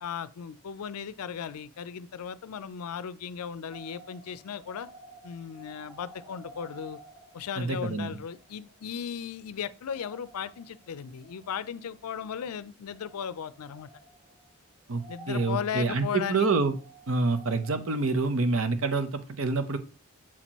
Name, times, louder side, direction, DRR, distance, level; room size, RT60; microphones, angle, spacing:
voice 1, 0.0-4.9 5.2-7.0 7.3-13.9 15.1-16.5, left 7 dB, 85° left, 0.4 m, -36 dB
sound 1, 3.7-9.1 9.4-9.5 9.8-12.1 12.8-14.6 14.9-18.9, right 3 dB, 5° right, 1.6 m, -53 dB
voice 2, 7.6-8.2 14.9-16.8 17.1-19.8, right 3 dB, 65° right, 0.8 m, -27 dB
7.3 x 4.3 x 3.0 m
head